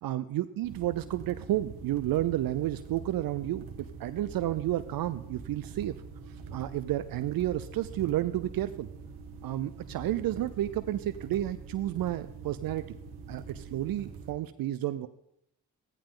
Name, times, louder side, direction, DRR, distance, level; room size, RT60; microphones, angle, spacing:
voice 1, 0.0-3.7 4.0-5.9 6.5-8.9 9.4-12.8 13.3-15.1, right 14 dB, 70° right, 12 dB, 0.6 m, -31 dB
sound 1, 0.6-14.3, right 4 dB, 90° right, 1.2 m, -45 dB
14.0 x 10.5 x 3.8 m, 0.76 s
supercardioid pair, 60°, 37 cm